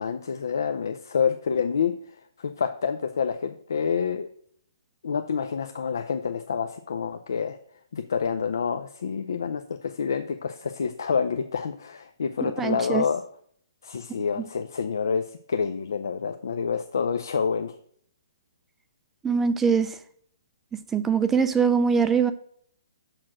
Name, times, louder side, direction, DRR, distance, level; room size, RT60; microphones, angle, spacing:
voice 1, 0.0-1.9 2.4-4.3 5.0-7.6 7.9-13.2 13.8-17.7, left 6 dB, 65° left, 0.5 m, -28 dB
voice 2, 12.6-13.0 19.2-20.0 20.9-22.3, right 6 dB, 10° right, 0.4 m, -22 dB
6.2 x 4.4 x 6.2 m
figure-of-eight pair, 130°, 2 cm